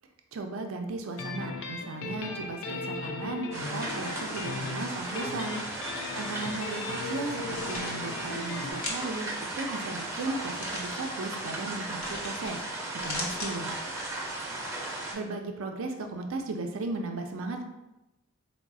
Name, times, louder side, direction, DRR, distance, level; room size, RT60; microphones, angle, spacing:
voice 1, 0.3-5.6 6.1-12.6 13.0-13.8 15.1-17.6, right 2 dB, 75° right, 4 dB, 0.4 m, -36 dB
sound 1, 1.2-8.7, left 3 dB, 65° left, 0.4 m, -37 dB
sound 2, 3.5-15.1, right 2 dB, 15° right, 0.5 m, -36 dB
sound 3, 7.4-7.9 8.8-9.2 10.4-11.0 12.0-12.5 12.9-13.5, left 2 dB, 85° left, 0.8 m, -38 dB
3.9 x 2.0 x 3.5 m, 0.98 s
head